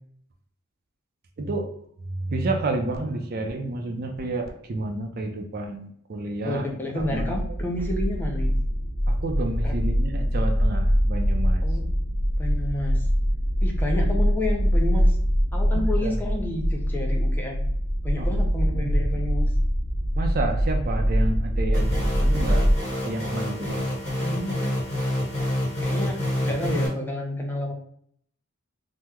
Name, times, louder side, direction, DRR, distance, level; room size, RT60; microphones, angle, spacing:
voice 1, 1.4-1.7 2.0-6.7 6.9-7.4 9.1-11.6 16.0-16.1 18.2-18.3 18.7-19.0 20.1-22.7 23.0-23.9, right 2 dB, 45° right, 4 dB, 0.4 m, -30 dB
voice 2, 6.4-8.6 9.6-9.7 11.6-12.0 12.4-13.1 13.6-15.2 15.5-17.6 18.0-19.6 24.2-24.9 25.8-27.7, left 1 dB, 10° left, 0 dB, 0.4 m, -30 dB
sound 1, 7.0-22.7, equal, 80° left, 0.9 m, -23 dB
sound 2, 21.7-26.9, left 1 dB, 30° left, 1.3 m, -28 dB
2.9 x 2.1 x 3.5 m, 0.65 s
head